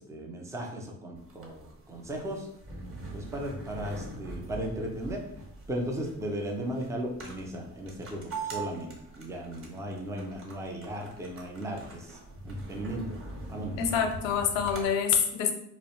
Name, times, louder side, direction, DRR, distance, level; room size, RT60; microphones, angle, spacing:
voice 1, 0.0-2.5 3.1-5.2 5.7-12.2 12.4-13.2 13.5-13.8, right 1 dB, 5° right, 1 dB, 0.3 m, -36 dB
sound 1, 1.2-14.9, right 2 dB, 25° right, 0.7 m, -42 dB
voice 2, 13.8-15.5, left 7 dB, 70° left, 6 dB, 0.6 m, -26 dB
2.3 x 2.0 x 2.9 m, 0.77 s
hypercardioid pair, 65°, 48 cm